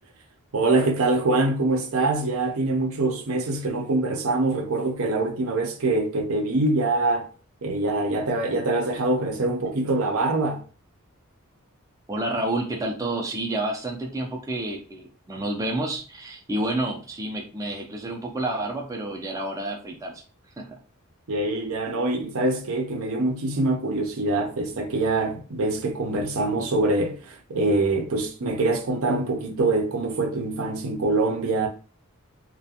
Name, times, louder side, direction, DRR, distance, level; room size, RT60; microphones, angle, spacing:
voice 1, 0.5-7.3 7.6-10.6 21.3-31.7, right 2 dB, 70° right, 0.5 m, -24 dB
voice 2, 12.1-20.2 20.6-20.8, right 1 dB, 15° right, 0.4 m, -29 dB
2.4 x 2.1 x 2.7 m
head